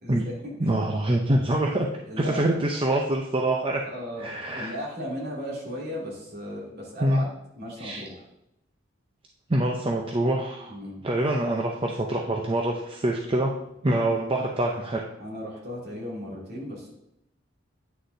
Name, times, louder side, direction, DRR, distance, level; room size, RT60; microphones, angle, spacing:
voice 1, 0.0-0.7 2.1-2.5 3.8-8.3 10.7-11.0 15.2-16.9, equal, 55° right, -4 dB, 2.5 m, -36 dB
voice 2, 0.6-1.9 2.2-3.8 4.2-4.7 7.0-7.2 7.8-8.0 9.5-10.8 11.0-13.5 13.8-15.0, right 1 dB, 30° right, 0 dB, 0.6 m, -25 dB
9.6 x 6.4 x 2.7 m, 0.81 s
head